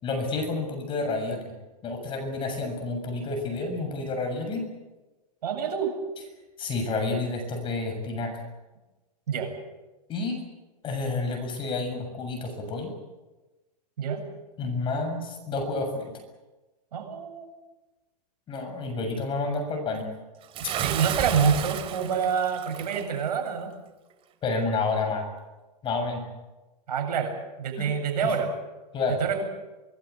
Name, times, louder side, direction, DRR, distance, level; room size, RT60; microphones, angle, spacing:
voice 1, 0.0-1.4 1.8-4.6 6.6-8.3 10.1-10.4 10.8-12.9 14.6-16.1 18.5-20.1 24.4-25.3 25.8-26.2 27.8-27.9 28.2-28.3 28.9-29.2, left 3 dB, 25° left, 5 dB, 7.1 m, -29 dB
voice 2, 5.4-6.0 9.3-9.5 14.0-14.2 16.9-17.5 20.8-23.7 26.9-28.5 29.1-29.4, right 6 dB, 80° right, 4 dB, 8.0 m, -27 dB
Bathtub (filling or washing) / Splash splatter, 20.5-23.1, right 10 dB, 25° right, 2.5 m, -32 dB
25.0 x 20.0 x 8.4 m, 1.1 s
hypercardioid pair, 140°, 20 cm